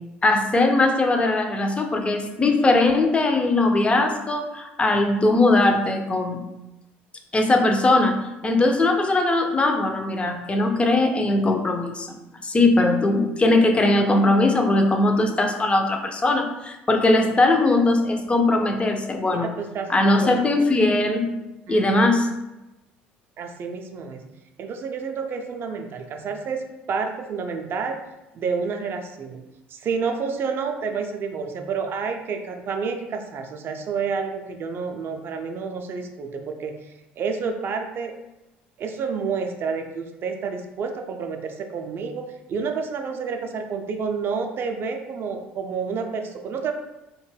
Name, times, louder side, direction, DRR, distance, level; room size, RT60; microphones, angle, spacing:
voice 1, 0.2-6.4 7.3-12.2 12.4-19.5 19.9-21.3 21.7-22.4, left 2 dB, 20° left, 4 dB, 0.4 m, -20 dB
voice 2, 19.2-20.7 21.7-22.0 23.4-24.2 24.6-26.6 26.9-28.0 28.3-29.4 29.7-38.1 38.8-46.7, right 5 dB, 45° right, 5 dB, 0.4 m, -29 dB
2.2 x 2.1 x 3.2 m, 0.97 s
hypercardioid pair, 60°, 6 cm